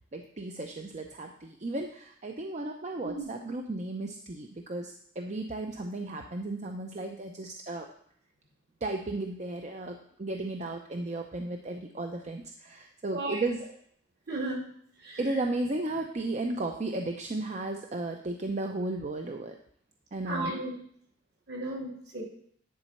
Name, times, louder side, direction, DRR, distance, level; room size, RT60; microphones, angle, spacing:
voice 1, 0.1-7.9 8.8-13.6 15.2-19.6 20.1-20.6, right 2 dB, 40° right, 4 dB, 0.6 m, -34 dB
voice 2, 13.1-13.4 14.3-14.6 15.0-15.2 20.2-20.7 21.5-22.2, right 2 dB, 65° right, -2 dB, 2.8 m, -34 dB
10.5 x 4.3 x 6.5 m, 0.64 s
head